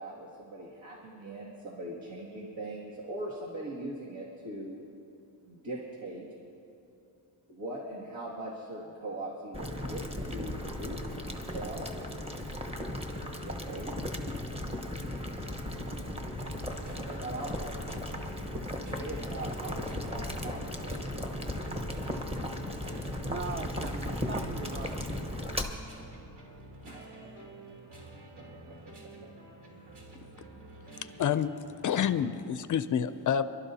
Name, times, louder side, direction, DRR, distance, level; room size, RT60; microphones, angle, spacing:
voice 1, 0.0-4.8 5.4-6.3 7.5-11.9 13.4-14.0 16.9-17.7 18.1-18.3 18.9-21.2 26.8-27.6 29.2-29.3 29.7-29.9, right 1 dB, 85° right, -5 dB, 2.3 m, -41 dB
Boiling, 9.5-25.6, left 1 dB, 15° right, 1.1 m, -36 dB
sound 1, 16.2-32.3, right 1 dB, 60° right, 3.5 m, -50 dB
voice 2, 23.3-25.3, right 4 dB, 30° right, 7 dB, 0.4 m, -40 dB
voice 3, 31.2-31.5 31.8-33.4, left 8 dB, 45° left, 12 dB, 0.4 m, -28 dB
27.5 x 12.0 x 2.8 m, 2.8 s
cardioid pair, 130°, 45 cm